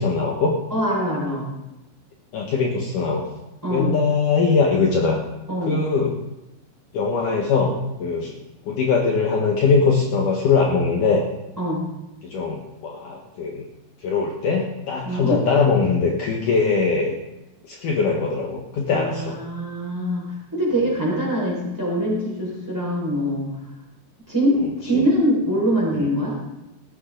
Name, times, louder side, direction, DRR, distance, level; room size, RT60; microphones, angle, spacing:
voice 1, 0.0-0.6 2.3-3.3 3.7-5.2 5.7-6.2 6.9-8.3 8.7-11.2 12.2-13.6 14.0-17.1 17.7-19.4 24.9-25.1 26.0-26.1, left 4 dB, 60° left, -1 dB, 2.7 m, -21 dB
voice 2, 0.7-1.5 3.6-3.9 5.5-5.8 11.6-11.8 15.0-15.4 18.9-23.5 24.3-26.4, equal, 5° right, -3 dB, 5.2 m, -23 dB
19.0 x 14.5 x 3.9 m, 0.95 s
omnidirectional pair, 4.5 m